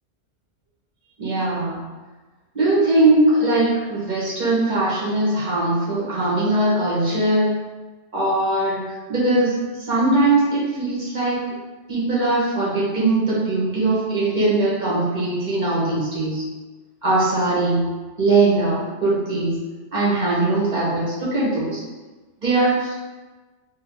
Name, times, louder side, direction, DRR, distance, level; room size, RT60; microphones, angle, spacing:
voice 1, 1.2-1.8 2.5-7.5 8.1-11.5 11.9-16.4 17.0-17.9 18.2-19.6 19.9-21.8 22.4-22.9, right 2 dB, 40° right, -8 dB, 1.1 m, -20 dB
3.5 x 2.2 x 3.4 m, 1.3 s
omnidirectional pair, 1.2 m